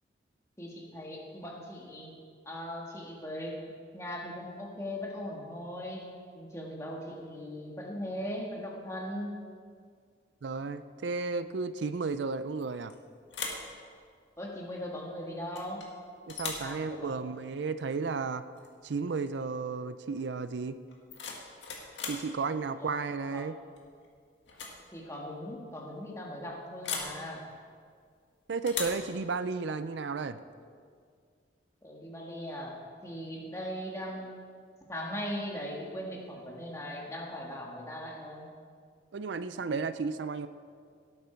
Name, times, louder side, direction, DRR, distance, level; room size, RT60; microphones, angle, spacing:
voice 1, 0.6-2.1 2.5-3.6 3.9-6.1 6.3-9.3 14.4-15.8 16.6-17.3 22.8-22.9 23.3-23.5 24.9-27.4 31.8-32.8 33.0-34.3 34.9-38.5, equal, 15° left, -2 dB, 1.7 m, -39 dB
voice 2, 10.4-12.9 16.3-18.4 18.8-20.8 22.1-23.6 28.5-30.4 39.1-40.5, right 4 dB, 75° right, 12 dB, 0.4 m, -33 dB
sound 1, 12.6-13.0 13.3-13.7 15.5-15.9 16.3-16.7 18.6-18.7 19.1-19.4 20.9-22.3 23.8-24.1 24.4-24.8 25.0-25.1 26.8-27.2 28.7-29.1, left 5 dB, 80° left, 1.9 m, -38 dB
17.5 x 8.8 x 4.5 m, 2.1 s
head